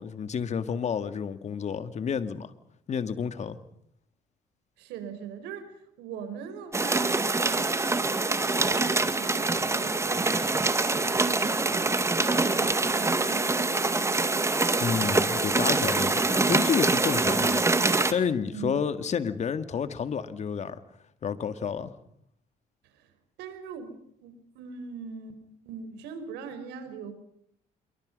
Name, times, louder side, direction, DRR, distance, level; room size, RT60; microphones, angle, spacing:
voice 1, 0.0-2.5 2.9-3.6 14.0-14.1 14.8-17.7 18.1-20.8 21.2-21.9, left 7 dB, 40° left, 2.1 m, -30 dB
voice 2, 4.8-11.9 12.5-14.4 18.4-19.0 22.8-23.1 23.4-23.9 24.2-27.1, right 6 dB, 90° right, 4.9 m, -42 dB
sound 1, 6.7-18.1, right 3 dB, 15° right, 2.0 m, -25 dB
27.5 x 23.0 x 5.4 m
cardioid pair, 110°, 17 cm